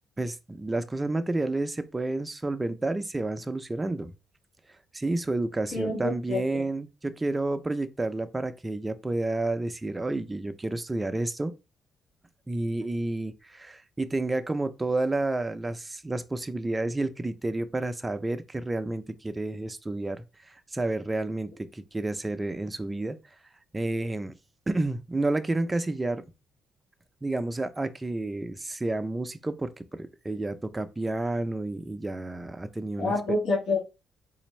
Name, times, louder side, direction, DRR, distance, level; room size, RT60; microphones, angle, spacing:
voice 1, 0.2-4.1 4.9-11.5 12.5-23.2 23.7-24.3 24.7-26.2 27.2-33.1, right 2 dB, 15° right, 0.4 m, -30 dB
voice 2, 5.7-6.6 33.0-33.8, left 2 dB, 75° left, 1.5 m, -27 dB
4.0 x 2.5 x 3.1 m
cardioid pair, 90°, 0 cm